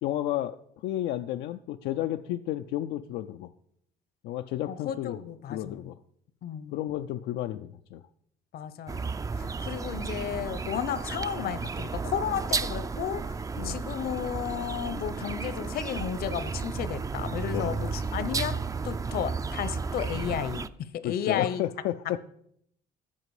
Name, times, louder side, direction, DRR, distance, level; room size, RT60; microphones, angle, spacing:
voice 1, 0.0-0.6 0.8-3.5 4.2-5.2 5.5-6.0 6.7-8.0 13.6-13.8 17.5-17.9 21.0-22.2, left 13 dB, 85° left, 7 dB, 0.5 m, -32 dB
voice 2, 4.6-5.8 6.4-6.8 8.5-9.0 9.4-13.4 13.6-21.6, left 9 dB, 65° left, 14 dB, 0.8 m, -33 dB
sound 1, 8.9-20.7, right 4 dB, 20° right, 0.4 m, -33 dB
13.0 x 7.5 x 4.8 m, 0.70 s
cardioid pair, 110°, 17 cm